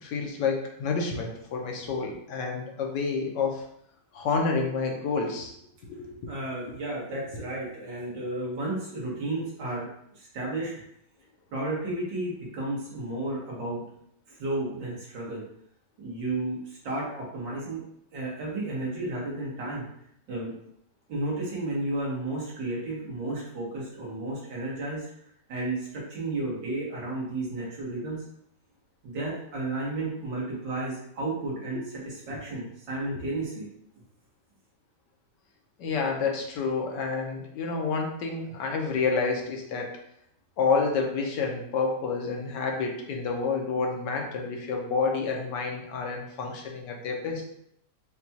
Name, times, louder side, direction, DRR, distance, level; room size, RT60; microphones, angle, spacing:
voice 1, 0.0-3.6 4.1-5.5 5.8-6.3 35.8-39.9 40.6-47.4, left 4 dB, 75° left, 1 dB, 1.4 m, -29 dB
voice 2, 6.3-9.9 10.2-10.7 11.5-13.8 14.3-15.4 16.0-17.8 18.1-19.9 20.3-20.5 21.1-25.1 25.5-28.2 29.0-33.7, right 2 dB, 85° right, -5 dB, 2.0 m, -32 dB
5.8 x 2.3 x 2.8 m, 0.73 s
omnidirectional pair, 1.9 m